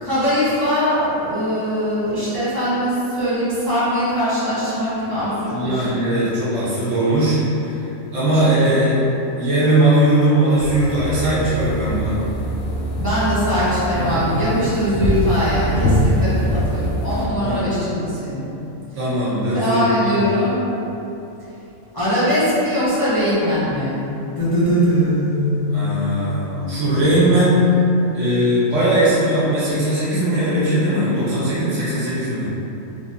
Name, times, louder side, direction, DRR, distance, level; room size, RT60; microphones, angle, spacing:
voice 1, 0.0-5.9 8.3-8.4 13.0-18.4 19.5-20.6 21.9-24.0 24.4-26.3 26.9-27.5, equal, 20° left, -14 dB, 0.9 m, -21 dB
voice 2, 5.5-7.8 8.1-9.0 9.4-12.2 13.9-14.2 17.4-17.6 18.9-20.3 25.7-27.6 28.1-32.5, right 1 dB, 70° right, -9 dB, 1.3 m, -19 dB
sound 1, 10.6-17.3, equal, 65° left, 0.5 m, -23 dB
3.6 x 3.1 x 2.7 m, 3.0 s
omnidirectional pair, 1.4 m